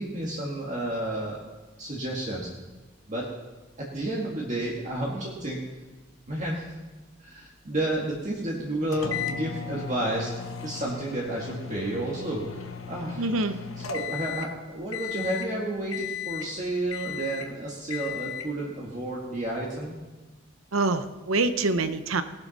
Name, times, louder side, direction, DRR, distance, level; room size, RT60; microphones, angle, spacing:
voice 1, 0.0-1.4 1.8-2.5 3.1-3.3 3.8-5.6 6.3-6.6 7.2-19.9, right 1 dB, 35° right, -3 dB, 1.6 m, -31 dB
sound 1, 8.9-14.6 14.9-15.5 15.9-16.6 16.9-17.5 17.9-18.5, left 8 dB, 90° left, 1.1 m, -36 dB
voice 2, 13.2-13.6 20.7-22.2, right 3 dB, 90° right, 11 dB, 0.8 m, -25 dB
18.5 x 11.5 x 4.1 m, 1.2 s
head